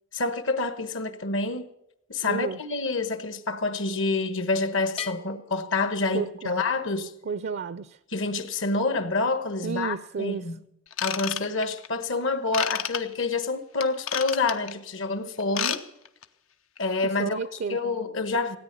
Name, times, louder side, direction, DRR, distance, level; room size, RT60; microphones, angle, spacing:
voice 1, 0.1-1.7 2.1-7.1 8.1-10.6 11.0-15.8 16.8-17.4 17.7-18.6, left 3 dB, 65° left, 1.3 m, -27 dB
voice 2, 2.2-2.6 6.1-6.5 7.2-8.0 9.6-10.5 17.0-17.8, right 5 dB, 55° right, 0.4 m, -32 dB
Bell, 5.0-6.7, left 8 dB, 30° left, 0.7 m, -41 dB
Ratchet pawl / Tools, 10.9-11.9 12.5-13.0 13.8-14.7 15.4-16.2 16.8-16.9, left 9 dB, 90° left, 0.9 m, -29 dB
17.0 x 9.6 x 6.8 m
head